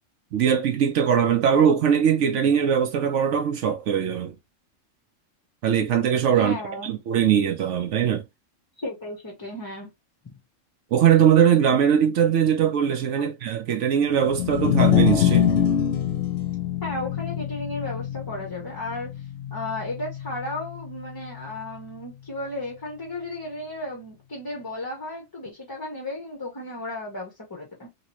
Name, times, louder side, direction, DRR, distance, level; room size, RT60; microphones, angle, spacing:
voice 1, 0.3-4.3 5.6-6.6 6.8-8.2 10.9-15.5, right 8 dB, 70° right, 0.9 m, -21 dB
voice 2, 6.4-6.9 8.8-9.9 13.2-13.3 16.8-19.1 19.5-27.9, left 1 dB, 25° left, 0.6 m, -34 dB
sound 1, 14.3-20.6, left 10 dB, 65° left, 0.8 m, -24 dB
3.0 x 2.9 x 2.8 m
omnidirectional pair, 1.3 m